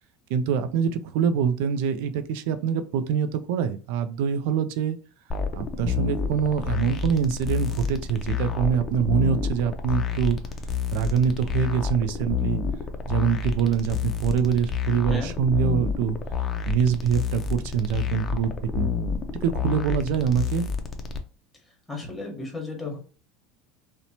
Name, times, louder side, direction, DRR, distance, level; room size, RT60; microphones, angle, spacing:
voice 1, 0.3-5.0 5.5-10.4 10.9-12.6 13.1-16.2 16.7-18.9 19.4-20.7, right 7 dB, 75° right, 11 dB, 0.3 m, -24 dB
sound 1, 5.3-21.2, left 6 dB, 25° left, 0.4 m, -29 dB
voice 2, 21.9-23.0, left 3 dB, 10° left, 1 dB, 1.0 m, -33 dB
2.8 x 2.1 x 2.7 m, 0.38 s
supercardioid pair, 120°, 0 cm